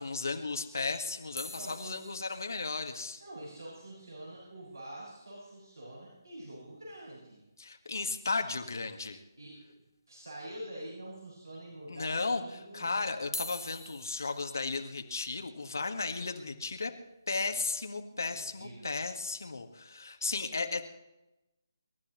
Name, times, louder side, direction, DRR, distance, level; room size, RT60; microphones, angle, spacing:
voice 1, 0.0-3.2 7.6-9.2 11.9-16.9 17.3-20.9, left 3 dB, 55° left, 5 dB, 1.7 m, -35 dB
sound 1, 1.4-5.7 6.0-6.1 6.3-6.4 6.8-7.0 8.3-8.4 9.1-9.6 10.1-10.2 11.1-11.2 13.2-19.3 19.8-20.1, left 1 dB, 80° left, 0.9 m, -48 dB
voice 2, 1.4-2.0 3.2-7.4 9.4-9.7 10.1-12.9 18.2-19.0, right 1 dB, 65° right, -5 dB, 6.8 m, -46 dB
26.5 x 13.0 x 3.1 m, 0.96 s
figure-of-eight pair, 150°, 2 cm